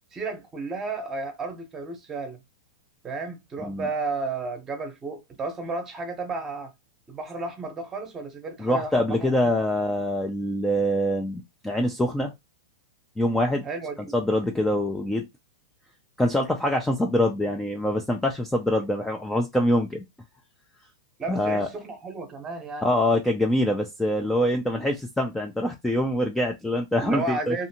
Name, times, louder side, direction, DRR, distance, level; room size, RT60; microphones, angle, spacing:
voice 1, 0.1-2.4 3.0-6.7 7.1-9.5 13.6-14.0 21.2-22.9 27.0-27.7, right 3 dB, 20° right, 0.8 m, -33 dB
voice 2, 8.6-12.3 13.2-13.7 14.1-15.3 16.2-20.0 21.3-21.7 22.8-27.5, left 1 dB, 5° left, 0.3 m, -24 dB
2.6 x 2.5 x 2.7 m
supercardioid pair, 145°, 2 cm